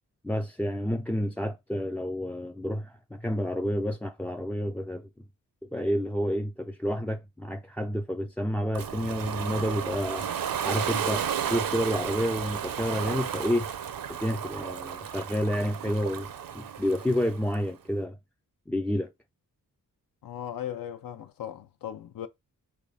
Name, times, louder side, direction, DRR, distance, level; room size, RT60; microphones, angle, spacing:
voice 1, 0.2-5.1 5.7-10.3 10.6-13.7 14.1-16.3 16.5-18.2 18.7-19.1, equal, 5° left, 0.3 m, -29 dB
Ocean, 8.7-17.6, right 8 dB, 75° right, 0.7 m, -33 dB
voice 2, 20.2-22.3, left 10 dB, 75° left, 0.6 m, -37 dB
3.4 x 3.1 x 4.0 m
cardioid pair, 90°, 35 cm